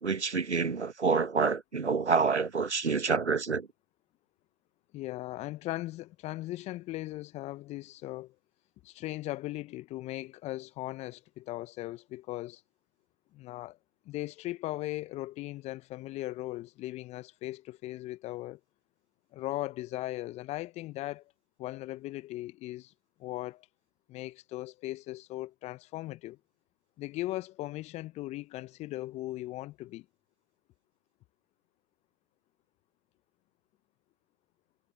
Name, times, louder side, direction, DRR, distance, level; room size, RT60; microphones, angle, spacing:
voice 1, 0.0-3.7, right 5 dB, 85° right, 1.4 m, -28 dB
voice 2, 4.9-8.3 8.8-12.6 13.3-13.8 14.0-18.6 19.3-21.2 21.6-22.9 23.2-23.7 24.1-26.4 27.0-30.0, left 17 dB, 20° left, 1.1 m, -38 dB
figure-of-eight pair, 120°, 33 cm